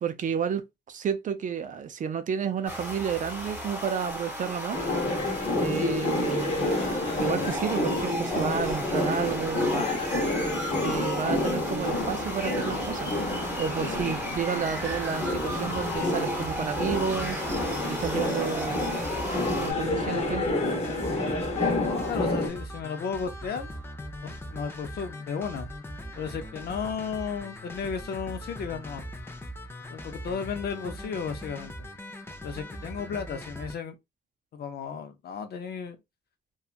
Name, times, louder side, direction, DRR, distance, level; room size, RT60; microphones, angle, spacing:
voice 1, 0.0-4.8 5.6-6.7 7.2-9.9 10.8-13.1 13.6-17.4 17.9-18.9 19.6-20.5, right 7 dB, 50° right, 0.4 m, -31 dB
sound 1, 2.7-19.7, equal, 10° right, 1.0 m, -35 dB
sound 2, 4.7-22.5, left 2 dB, 40° left, 0.9 m, -29 dB
sound 3, 14.7-33.7, equal, 15° left, 0.4 m, -40 dB
voice 2, 22.1-23.7 24.2-25.7 26.2-29.0 29.9-31.7 32.4-34.0 34.5-36.0, left 6 dB, 70° left, 0.6 m, -34 dB
2.8 x 2.3 x 2.4 m
wide cardioid pair, 135°, 17 cm